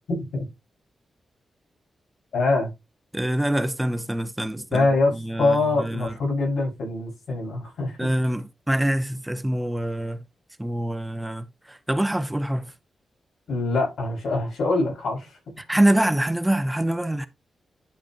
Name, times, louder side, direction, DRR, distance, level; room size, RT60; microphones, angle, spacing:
voice 1, 0.1-0.5 2.3-2.7 4.7-8.1 13.5-15.4, left 3 dB, 80° left, 5.7 m, -24 dB
voice 2, 3.1-4.9 5.1-6.1 8.0-10.2 10.6-12.7 15.6-17.3, right 1 dB, 10° right, 0.6 m, -25 dB
10.5 x 5.2 x 2.9 m
wide cardioid pair, 110°, 0 cm